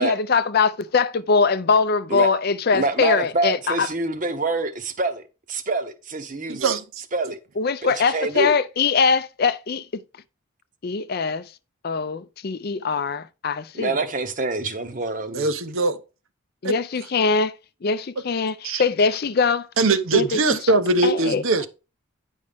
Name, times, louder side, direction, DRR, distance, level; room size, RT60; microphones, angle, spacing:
voice 1, 0.0-3.9 7.6-10.0 10.8-11.4 11.8-14.0 16.6-17.5 17.8-19.7 20.1-20.6 21.0-21.4, left 5 dB, 45° left, 0.4 m, -22 dB
voice 2, 2.7-6.8 7.1-7.4 7.8-8.6 13.7-15.5, right 3 dB, 35° right, 0.9 m, -26 dB
voice 3, 6.5-6.8 15.3-16.0 16.6-16.7 18.6-18.8 19.8-21.7, right 3 dB, 70° right, 0.8 m, -21 dB
9.5 x 5.4 x 3.5 m
head